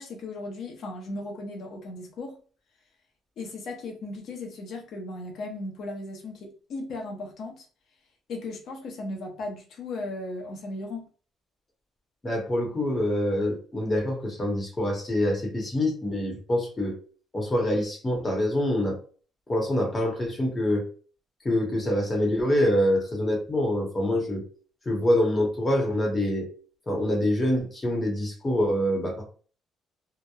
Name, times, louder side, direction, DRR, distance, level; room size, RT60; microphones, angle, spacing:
voice 1, 0.0-2.4 3.4-7.7 8.3-11.1, left 2 dB, 55° left, 0.7 m, -36 dB
voice 2, 12.2-17.0 17.3-19.0 19.5-20.8 21.4-24.4 24.9-26.5 26.9-29.2, left 1 dB, 15° left, 0.8 m, -25 dB
2.8 x 2.0 x 2.3 m
cardioid pair, 170°, 0 cm